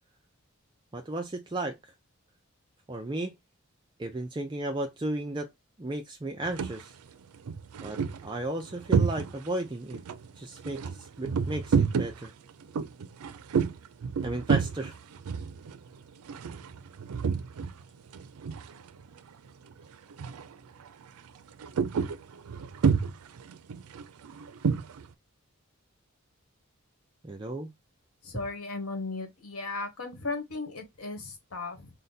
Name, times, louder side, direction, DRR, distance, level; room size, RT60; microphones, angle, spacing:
voice 1, 0.9-1.8 2.9-3.4 4.0-5.5 5.8-6.9 7.8-10.0 10.4-12.3 14.2-15.0 27.2-27.7, right 2 dB, 20° right, 0.4 m, -34 dB
sound 1, 6.4-6.8 7.3-9.6 9.9-17.8 18.1-19.2 19.5-19.7 20.1-20.5 20.8-25.0, right 6 dB, 85° right, 0.4 m, -30 dB
voice 2, 28.2-31.9, left 3 dB, 85° left, 1.2 m, -36 dB
3.9 x 2.1 x 4.0 m
head